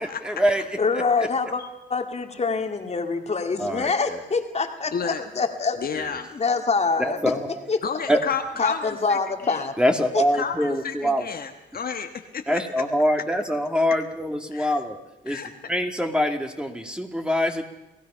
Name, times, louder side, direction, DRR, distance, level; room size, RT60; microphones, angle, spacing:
voice 1, 0.2-0.6 3.6-4.2 5.9-6.1 7.0-7.6 8.1-8.2 9.8-11.2 12.5-15.0 15.2-15.4 15.7-17.6, equal, 5° right, 4 dB, 2.3 m, -24 dB
voice 2, 0.8-1.6 1.9-5.7 6.3-7.3 7.7-7.8 8.6-9.7 10.1-10.2, left 4 dB, 35° left, 5 dB, 2.2 m, -25 dB
voice 3, 4.9-5.2 5.8-6.3 7.8-9.7 10.4-12.6 14.5-14.8 15.3-15.5, left 6 dB, 50° left, 5 dB, 1.4 m, -31 dB
29.0 x 16.5 x 5.7 m, 0.94 s
cardioid pair, 90°, 20 cm